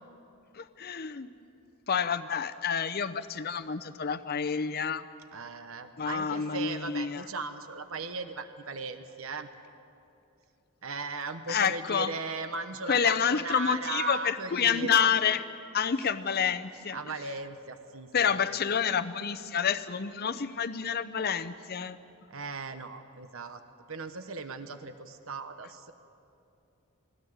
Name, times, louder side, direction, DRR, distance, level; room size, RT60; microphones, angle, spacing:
voice 1, 0.5-1.3 1.9-5.0 6.0-7.2 11.5-12.1 12.9-15.4 15.7-17.0 18.1-22.0, left 7 dB, 45° left, 11 dB, 0.7 m, -28 dB
voice 2, 5.3-9.5 10.8-15.1 16.9-18.5 22.3-23.6 23.9-25.9, right 4 dB, 65° right, 9 dB, 1.1 m, -37 dB
21.0 x 16.5 x 9.5 m, 2.6 s
head